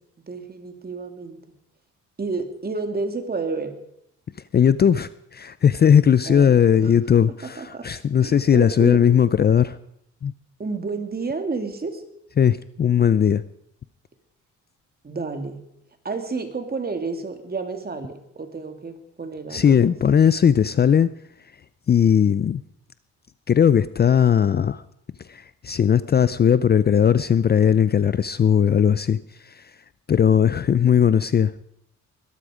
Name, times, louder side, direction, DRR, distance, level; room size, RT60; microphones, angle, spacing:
voice 1, 0.3-1.4 2.2-3.7 6.3-6.9 7.6-7.8 8.2-9.0 10.6-12.0 15.0-15.6 16.0-19.9, right 4 dB, 30° right, 6 dB, 2.6 m, -30 dB
voice 2, 4.5-9.8 10.2-10.3 12.4-13.4 19.5-21.1 21.9-22.6 23.5-24.8 25.3-29.2 29.4-29.7 30.1-31.5, left 8 dB, 35° left, 16 dB, 0.5 m, -18 dB
21.0 x 13.0 x 5.0 m, 0.76 s
cardioid pair, 90°, 30 cm